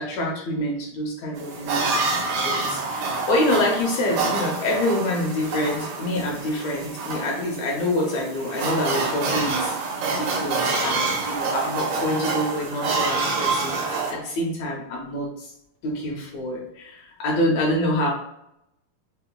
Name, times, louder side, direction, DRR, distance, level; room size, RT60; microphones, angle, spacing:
voice 1, 0.0-1.9 2.4-15.5 15.8-18.1, left 1 dB, 80° left, -2 dB, 1.7 m, -26 dB
sound 1, 1.4-14.1, right 3 dB, 80° right, 1.4 m, -27 dB
5.5 x 2.1 x 2.2 m, 0.79 s
omnidirectional pair, 3.6 m